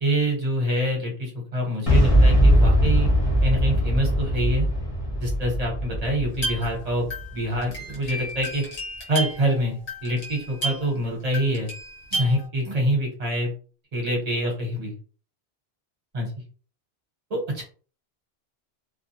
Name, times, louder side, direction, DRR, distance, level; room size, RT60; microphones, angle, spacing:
voice 1, 0.0-3.1 3.4-4.7 5.2-8.6 9.1-11.7 12.1-13.5 13.9-14.9 16.1-16.3 17.3-17.6, equal, 40° right, 0 dB, 1.0 m, -26 dB
Boom, 1.9-7.7, equal, 35° left, 0.8 m, -20 dB
sound 1, 6.3-11.0 11.3-12.5, right 1 dB, 55° left, 1.1 m, -33 dB
2.3 x 2.2 x 2.8 m, 0.39 s
omnidirectional pair, 1.1 m